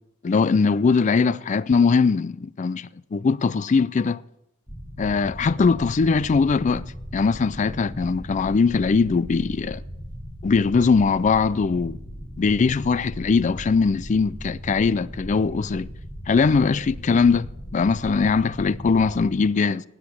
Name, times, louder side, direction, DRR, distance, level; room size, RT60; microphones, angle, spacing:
voice 1, 0.2-4.2 5.0-6.9 7.1-9.8 10.4-12.0 12.4-15.9 16.3-19.8, left 4 dB, 35° left, 0.4 m, -21 dB
sound 1, 4.7-19.3, equal, 10° left, 1.3 m, -38 dB
10.5 x 7.9 x 8.5 m
head